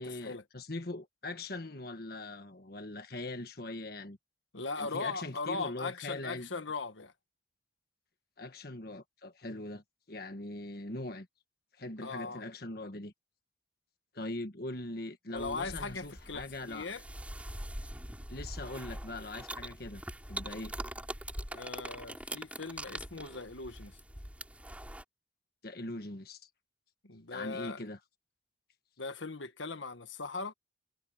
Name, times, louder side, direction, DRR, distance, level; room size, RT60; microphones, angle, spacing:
voice 1, 0.0-4.2 4.8-6.5 8.4-11.3 11.8-13.1 14.1-16.9 18.3-20.0 20.3-20.7 25.6-26.5 27.3-28.0, left 2 dB, 55° left, 1.5 m, -41 dB
voice 2, 4.5-7.1 12.0-12.4 15.3-17.0 21.5-24.0 27.0-27.8 29.0-30.5, left 4 dB, 85° left, 1.6 m, -39 dB
sound 1, 15.4-25.0, right 1 dB, 10° right, 3.4 m, -43 dB
head